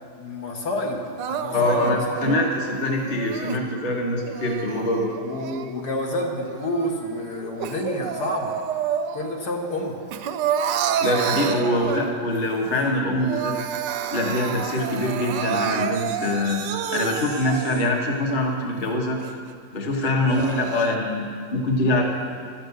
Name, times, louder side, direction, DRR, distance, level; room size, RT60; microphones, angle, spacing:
voice 1, 0.2-1.0 1.3-2.3 5.2-8.6 9.1-10.0 11.5-11.6 20.0-20.2, left 1 dB, 65° left, 0 dB, 1.9 m, -29 dB
Crying sobbing, 1.2-3.6 4.2-6.0 6.5-9.4 9.7-12.4 12.8-12.9 13.2-18.0 18.5-18.6 19.2-19.3 20.0-21.0, right 8 dB, 80° right, 1.3 m, -29 dB
voice 2, 1.5-5.1 11.0-13.5 14.1-16.6 16.9-19.2 19.7-22.0, left 1 dB, 30° left, 1 dB, 1.2 m, -24 dB
11.5 x 7.2 x 8.1 m, 2.2 s
omnidirectional pair, 2.0 m